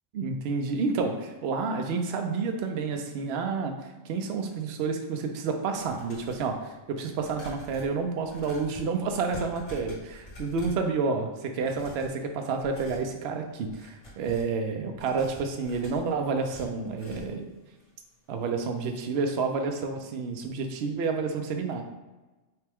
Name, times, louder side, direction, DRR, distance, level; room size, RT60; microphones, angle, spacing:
voice 1, 0.1-17.5 18.3-21.8, right 4 dB, 65° right, 4 dB, 0.8 m, -30 dB
sound 1, 5.7-6.5 7.1-10.9 11.5-12.2 12.6-13.1 13.6-14.5 14.9-17.4 17.8-17.9 18.2-18.3, left 1 dB, 65° left, 1.7 m, -47 dB
5.7 x 2.2 x 3.4 m, 1.2 s
omnidirectional pair, 1.3 m